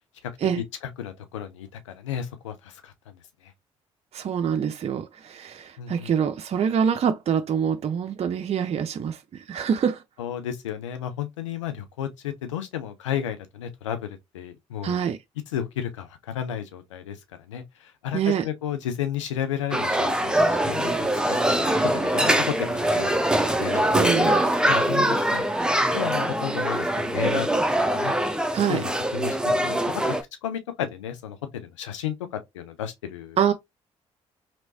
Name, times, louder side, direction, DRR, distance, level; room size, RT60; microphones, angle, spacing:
voice 1, 1.0-3.2 3.4-3.5 5.8-6.1 10.2-15.1 15.5-23.2 23.4-24.2 24.7-25.5 25.9-27.5 27.9-28.1 28.4-30.2 30.4-33.4, left 10 dB, 85° left, 0.5 m, -33 dB
voice 2, 4.1-10.0 14.8-15.2 18.1-18.4 23.9-24.4 28.5-28.8 33.4-33.5, right 8 dB, 45° right, 0.5 m, -25 dB
sound 1, 19.7-30.2, right 1 dB, 5° right, 0.7 m, -23 dB
Water tap faucet / Sink (filling or washing), 20.0-25.5, left 2 dB, 60° left, 1.5 m, -46 dB
3.1 x 2.9 x 2.7 m
hypercardioid pair, 45°, 15 cm